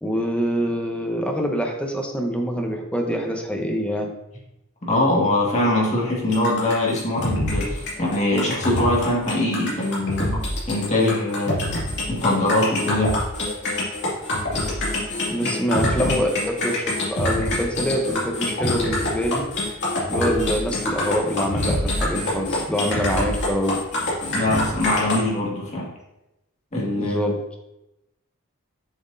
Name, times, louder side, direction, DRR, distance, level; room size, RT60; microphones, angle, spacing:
voice 1, 0.0-4.1 15.3-19.5 20.1-23.9 26.9-27.4, equal, 5° left, 2 dB, 0.9 m, -25 dB
voice 2, 4.9-11.6 12.1-13.2 16.0-16.2 24.3-25.9 26.7-27.3, left 1 dB, 35° left, -3 dB, 1.8 m, -22 dB
sound 1, 6.3-25.2, left 1 dB, 55° left, 2.5 m, -25 dB
7.3 x 6.0 x 2.7 m, 0.92 s
head